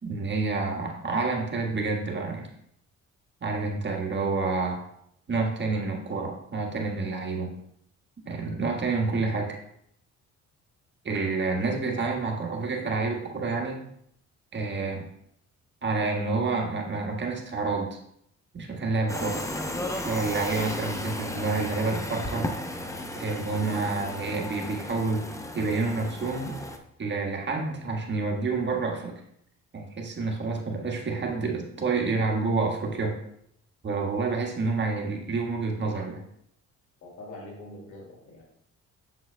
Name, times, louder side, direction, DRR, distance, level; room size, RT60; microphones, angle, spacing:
voice 1, 0.0-2.5 3.4-4.8 5.3-7.5 8.2-9.6 11.0-13.8 14.5-15.1 15.8-18.0 18.5-19.4 20.0-22.5 23.1-25.2 25.5-26.5 27.0-29.2 29.7-33.2 33.8-36.2, right 3 dB, 35° right, 0 dB, 1.5 m, -28 dB
sound 1, 19.1-26.8, left 1 dB, 10° left, 0.6 m, -34 dB
voice 2, 37.0-38.4, left 1 dB, 75° left, -1 dB, 2.4 m, -43 dB
7.7 x 6.3 x 2.2 m, 0.72 s
cardioid pair, 90°, 30 cm